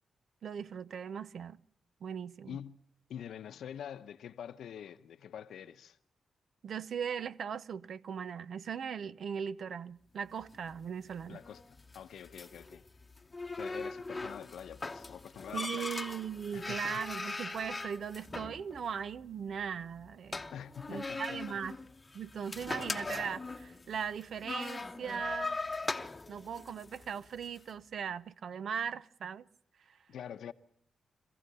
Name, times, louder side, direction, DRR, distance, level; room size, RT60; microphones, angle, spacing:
voice 1, 0.4-1.6 2.0-2.6 6.6-11.4 15.5-20.4 20.9-21.8 22.1-25.6 26.3-29.4 29.9-30.0, right 7 dB, 65° right, 0.7 m, -39 dB
voice 2, 2.4-2.8 3.1-6.0 11.3-12.9 13.5-15.9 16.5-17.0 20.5-21.6 30.1-30.5, left 9 dB, 85° left, 0.9 m, -46 dB
sound 1, 10.3-27.6, left 3 dB, 20° left, 0.9 m, -41 dB
25.5 x 15.5 x 6.8 m
cardioid pair, 110°, 0 cm